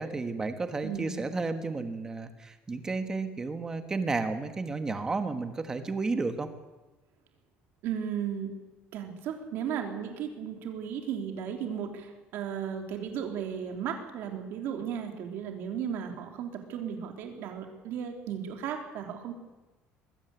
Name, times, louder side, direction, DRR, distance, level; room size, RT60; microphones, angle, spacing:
voice 1, 0.0-6.5, right 3 dB, 15° right, 8 dB, 1.5 m, -32 dB
voice 2, 0.8-1.2 7.8-8.5 8.9-19.3, right 8 dB, 55° right, 4 dB, 3.2 m, -35 dB
21.0 x 15.5 x 8.2 m, 1.1 s
cardioid pair, 175°, 4 cm